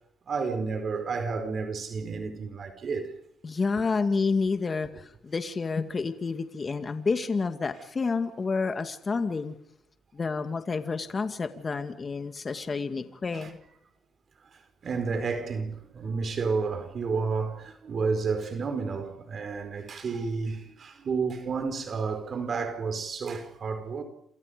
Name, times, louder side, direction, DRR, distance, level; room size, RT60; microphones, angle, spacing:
voice 1, 0.3-3.1 13.3-13.5 14.4-24.0, right 4 dB, 50° right, 4.7 m, -31 dB
voice 2, 3.4-9.5 10.1-13.6, left 4 dB, 35° left, 2.2 m, -29 dB
28.5 x 27.5 x 5.3 m
cardioid pair, 90°, 0 cm